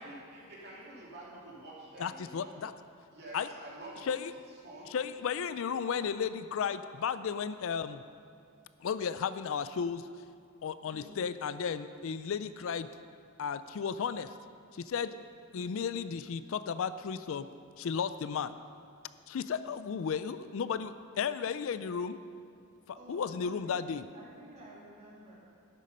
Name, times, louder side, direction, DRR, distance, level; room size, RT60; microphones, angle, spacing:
voice 1, 0.0-2.5 3.1-4.1 4.6-4.9, right 1 dB, 45° right, -5 dB, 2.8 m, -48 dB
voice 2, 2.0-2.7 3.3-3.5 4.1-4.3 4.9-8.0 8.8-10.1 10.6-12.9 13.4-14.3 14.7-15.1 15.5-17.5 17.8-18.5 19.3-22.2 22.9-24.0, left 6 dB, 60° left, 13 dB, 0.4 m, -34 dB
voice 3, 10.9-11.2 15.5-15.7 22.9-23.8 24.1-25.4, right 1 dB, 30° right, -7 dB, 3.2 m, -52 dB
11.5 x 9.1 x 5.5 m, 2.3 s
head